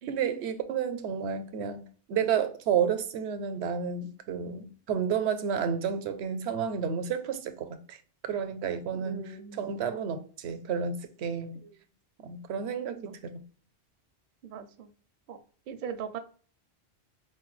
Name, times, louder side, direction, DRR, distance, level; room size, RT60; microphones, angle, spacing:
voice 1, 0.1-1.8 2.1-8.0 8.2-11.6 12.2-13.4, right 7 dB, 85° right, 0.9 m, -31 dB
voice 2, 9.0-9.8 11.6-11.7 13.1-13.2 14.4-14.9 15.3-15.4 15.7-16.2, right 6 dB, 60° right, 0.6 m, -40 dB
4.5 x 2.2 x 3.0 m
omnidirectional pair, 1.1 m